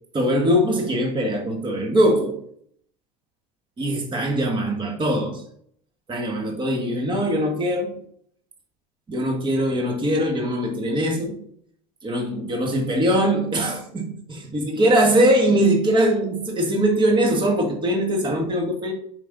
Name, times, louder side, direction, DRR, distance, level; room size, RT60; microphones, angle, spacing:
voice 1, 0.1-2.4 3.8-5.4 6.1-8.0 9.1-11.4 12.0-14.2 14.5-18.9, right 1 dB, 30° right, 1.6 m, -21 dB
5.3 x 5.2 x 3.9 m
supercardioid pair, 90°, 17 cm